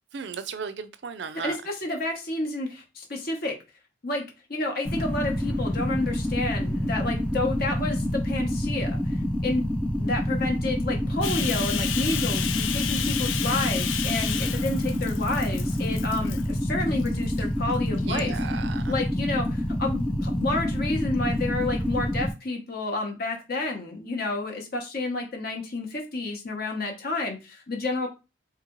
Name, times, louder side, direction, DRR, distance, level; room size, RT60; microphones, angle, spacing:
voice 1, 0.1-1.6 18.0-18.9, right 6 dB, 60° right, 13 dB, 0.4 m, -35 dB
voice 2, 1.4-3.5 4.0-4.2 4.5-9.1 9.4-9.7 10.0-18.3 18.9-28.1, left 2 dB, 50° left, 2 dB, 0.9 m, -30 dB
sound 1, 4.8-22.3, left 1 dB, 5° left, 0.3 m, -27 dB
Bathtub (filling or washing), 11.2-16.6 17.0-17.4 18.0-18.8, left 9 dB, 80° left, 0.5 m, -32 dB
3.1 x 2.8 x 3.8 m, 0.28 s
head